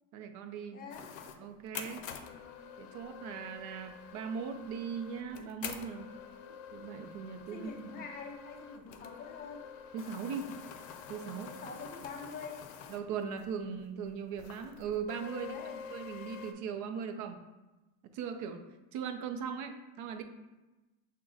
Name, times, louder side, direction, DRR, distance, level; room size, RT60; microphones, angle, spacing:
voice 1, 0.1-0.8 1.4-2.1 2.8-6.1 6.7-7.9 9.9-10.5 11.1-11.5 12.9-15.5 15.9-17.4 18.0-18.6 18.9-20.2, right 6 dB, 50° right, 7 dB, 0.5 m, -39 dB
voice 2, 0.7-1.1 6.3-6.6 7.5-9.7 11.5-12.7 15.4-15.9, left 5 dB, 25° left, 2 dB, 0.6 m, -46 dB
sound 1, 0.9-13.5 13.8-13.9 14.4-16.5, left 8 dB, 85° left, 0.6 m, -47 dB
5.9 x 2.2 x 3.8 m, 1.1 s
cardioid pair, 145°, 40 cm